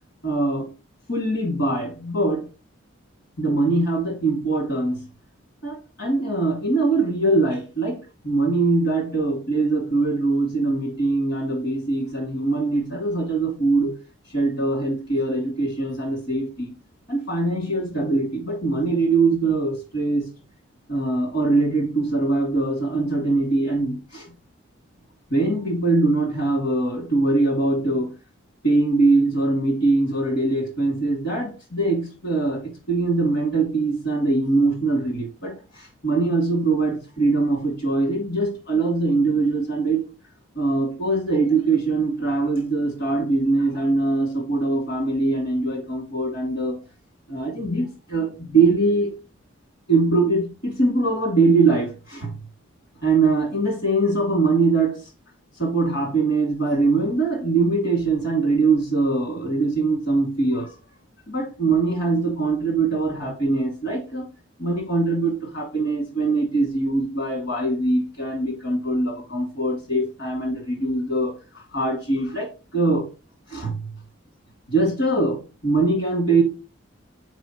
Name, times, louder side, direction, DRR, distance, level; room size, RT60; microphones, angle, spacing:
voice 1, 0.2-0.7 1.1-2.5 3.4-5.1 5.6-14.0 14.3-16.7 17.1-20.3 20.9-24.3 25.3-28.1 28.6-40.0 40.6-46.8 47.3-49.1 49.9-52.3 53.0-55.1 55.6-60.7 61.3-64.3 64.6-73.1 73.5-73.9 74.7-76.4, right 3 dB, 65° left, 2.5 m, -22 dB
8.0 x 4.4 x 3.0 m
head